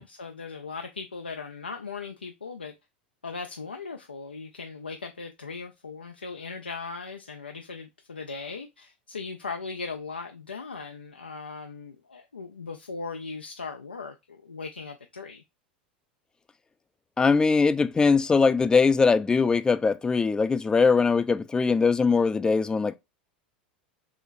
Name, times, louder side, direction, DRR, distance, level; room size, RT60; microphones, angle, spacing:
voice 1, 0.0-2.7 3.2-15.4, left 4 dB, 90° left, 0.4 m, -38 dB
voice 2, 17.2-22.9, left 4 dB, 15° left, 0.3 m, -21 dB
3.8 x 3.0 x 2.4 m
figure-of-eight pair, 85°, 5 cm